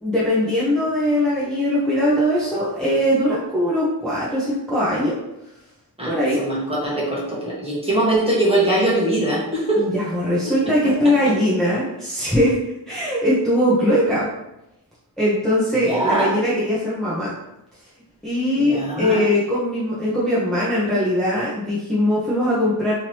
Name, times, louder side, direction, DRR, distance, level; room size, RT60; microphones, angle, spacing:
voice 1, 0.0-5.2 6.0-6.4 9.8-12.6 12.9-14.3 15.2-17.3 18.2-23.0, equal, ahead, -10 dB, 1.0 m, -20 dB
voice 2, 6.0-9.9 10.4-10.5 15.8-16.4 18.5-19.3, right 1 dB, 15° right, -6 dB, 1.4 m, -22 dB
3.6 x 3.1 x 2.9 m, 0.89 s
wide cardioid pair, 55°, 40 cm